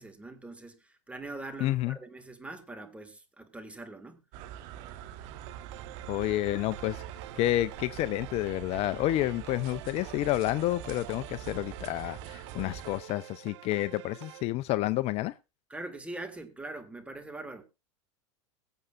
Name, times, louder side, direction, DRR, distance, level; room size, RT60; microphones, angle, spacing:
voice 1, 0.0-4.2 15.7-17.6, right 2 dB, 10° right, 1.9 m, -42 dB
voice 2, 1.6-2.0 6.1-7.0 7.4-15.3, left 15 dB, 40° left, 0.5 m, -29 dB
sound 1, 4.3-13.0, right 10 dB, 55° right, 1.3 m, -44 dB
sound 2, 5.2-14.4, right 17 dB, 70° right, 0.5 m, -48 dB
22.0 x 7.8 x 2.5 m
hypercardioid pair, 105°, 15 cm